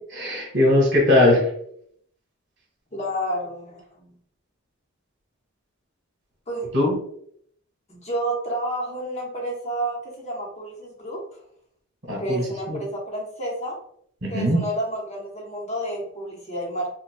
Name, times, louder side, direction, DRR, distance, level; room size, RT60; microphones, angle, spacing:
voice 1, 0.1-1.4 6.7-6.9 12.1-12.4 12.7-12.8 14.2-14.6, left 1 dB, 60° right, -1 dB, 1.4 m, -19 dB
voice 2, 2.9-4.1 6.5-6.7 7.9-11.4 12.2-13.8 14.3-16.9, right 1 dB, 30° left, -3 dB, 0.9 m, -30 dB
5.1 x 2.2 x 2.2 m, 0.67 s
head